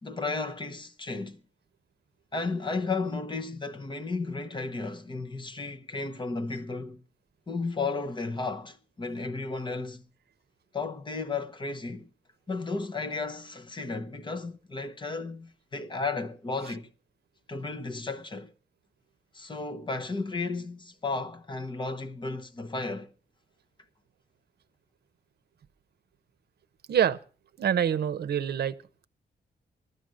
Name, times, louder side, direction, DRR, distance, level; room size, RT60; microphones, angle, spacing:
voice 1, 0.0-1.4 2.3-7.0 7.5-10.0 10.7-12.1 12.5-16.9 17.5-18.5 19.3-23.1, left 3 dB, 25° left, 0.9 m, -34 dB
voice 2, 27.6-28.7, right 9 dB, 65° right, 0.7 m, -25 dB
14.5 x 12.0 x 6.3 m
wide cardioid pair, 155°, 18 cm